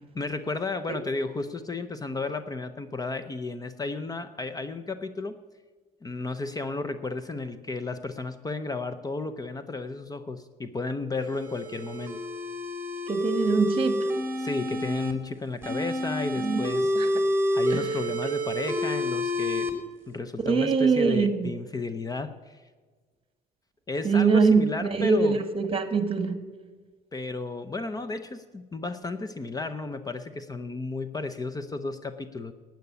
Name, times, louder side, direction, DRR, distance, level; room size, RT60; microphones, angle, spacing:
voice 1, 0.0-5.4 6.0-12.2 14.4-16.9 17.5-19.7 20.1-22.6 23.9-25.4 27.1-32.5, left 3 dB, 20° left, 11 dB, 0.7 m, -33 dB
sound 1, 11.2-15.1 15.6-19.7, equal, 15° right, 2.4 m, -28 dB
voice 2, 13.1-14.1 16.4-16.6 17.0-17.1 17.7-18.0 20.4-21.5 24.0-26.4, right 5 dB, 35° right, 10 dB, 1.5 m, -23 dB
12.0 x 9.2 x 6.8 m, 1.4 s
cardioid pair, 110°, 17 cm